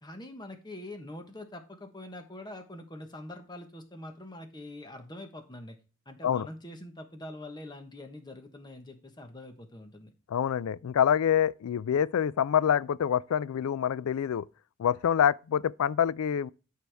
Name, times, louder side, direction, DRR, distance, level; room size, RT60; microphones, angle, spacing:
voice 1, 0.0-5.8 6.1-10.1, left 1 dB, 20° left, 1.1 m, -44 dB
voice 2, 10.3-14.5 14.8-16.5, left 8 dB, 80° left, 0.3 m, -26 dB
12.5 x 4.8 x 3.4 m
head